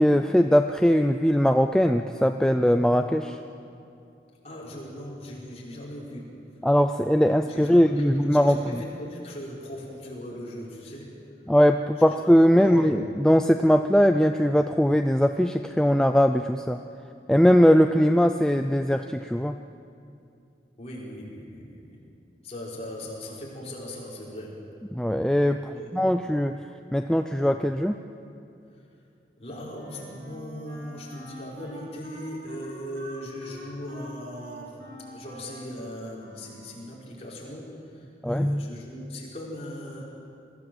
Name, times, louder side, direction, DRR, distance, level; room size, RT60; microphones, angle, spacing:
voice 1, 0.0-3.4 6.6-8.6 11.5-16.8 17.3-19.6 24.9-26.6 26.9-28.0 38.2-38.7, equal, 5° left, 6 dB, 0.4 m, -20 dB
voice 2, 4.4-6.3 7.5-11.2 12.0-12.2 12.5-12.9 20.8-22.0 22.4-24.7 25.6-25.9 29.4-34.8 35.1-40.0, equal, 35° left, -5 dB, 4.8 m, -39 dB
Wind instrument woodwind instrument, 29.7-37.1, equal, 65° right, 5.0 m, -46 dB
23.0 x 15.0 x 7.8 m, 2.6 s
head